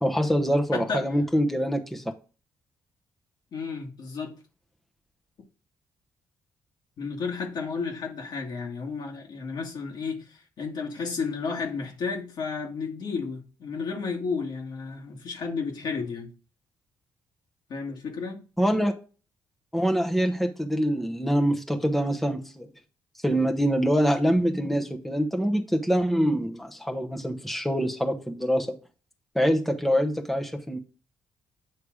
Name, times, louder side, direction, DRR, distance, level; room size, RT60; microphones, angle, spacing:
voice 1, 0.0-2.0 18.6-18.9 19.7-22.7 23.2-28.8 29.3-30.8, equal, ahead, 0.9 m, -25 dB
voice 2, 0.7-1.1 3.5-4.3 7.0-16.3 17.7-18.4, left 5 dB, 65° left, 2.0 m, -32 dB
8.5 x 3.3 x 4.9 m
cardioid pair, 70°, 8 cm